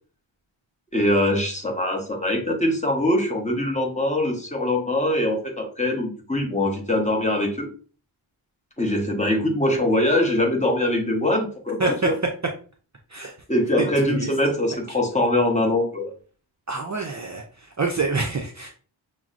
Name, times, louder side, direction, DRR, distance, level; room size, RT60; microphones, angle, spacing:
voice 1, 0.9-7.7 8.8-12.2 13.5-16.1, left 1 dB, 15° left, 1 dB, 0.9 m, -23 dB
voice 2, 11.8-12.1 13.1-13.3 13.8-14.3 16.7-17.4 17.8-18.7, right 3 dB, 35° right, 2 dB, 0.4 m, -26 dB
5.8 x 2.1 x 2.4 m, 0.39 s
wide cardioid pair, 100°, 50 cm